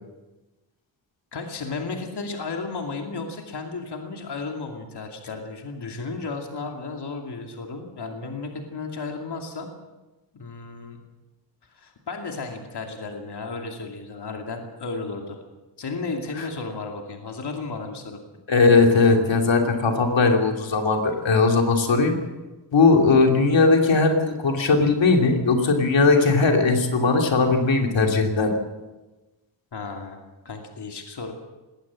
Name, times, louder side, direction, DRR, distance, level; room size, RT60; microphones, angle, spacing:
voice 1, 1.3-9.7 10.3-11.0 11.7-15.4 15.8-18.2 29.7-30.2 30.4-31.3, left 4 dB, 65° left, 2 dB, 2.6 m, -33 dB
voice 2, 18.5-22.2 22.7-28.5, left 3 dB, 90° left, 2 dB, 2.9 m, -19 dB
20.0 x 18.0 x 7.5 m, 1.1 s
wide cardioid pair, 170°, 43 cm